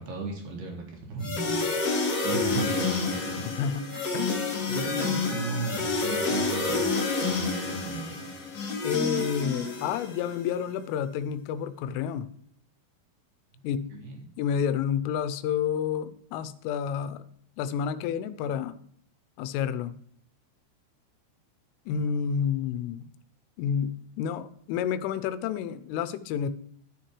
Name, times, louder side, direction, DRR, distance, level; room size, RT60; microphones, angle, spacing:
voice 1, 0.0-1.7 2.2-3.4 3.9-4.0 4.7-8.4 13.6-14.2, right 4 dB, 55° right, 0 dB, 3.1 m, -36 dB
sound 1, 1.2-10.3, left 3 dB, 45° left, 2.3 m, -29 dB
voice 2, 3.4-4.5 8.8-12.3 13.6-13.9 14.4-17.2 17.6-18.8 19.4-19.9 21.9-23.1 23.6-26.5, left 8 dB, 90° left, 12 dB, 3.2 m, -30 dB
13.0 x 6.6 x 3.1 m, 0.65 s
omnidirectional pair, 5.6 m